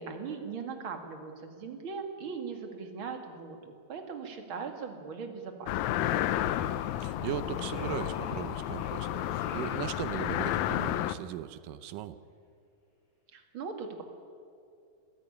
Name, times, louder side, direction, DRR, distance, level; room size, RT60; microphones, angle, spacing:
voice 1, 0.0-6.0 13.3-14.0, right 5 dB, 40° right, 5 dB, 2.7 m, -40 dB
sound 1, 5.7-11.1, left 13 dB, 75° left, 1.8 m, -31 dB
Telephone, 5.7-6.8 7.4-9.8 10.1-10.5, right 1 dB, 35° left, 6.0 m, -46 dB
voice 2, 6.6-12.2, right 11 dB, 80° right, 14 dB, 2.4 m, -38 dB
26.0 x 16.5 x 9.9 m, 2.4 s
omnidirectional pair, 3.9 m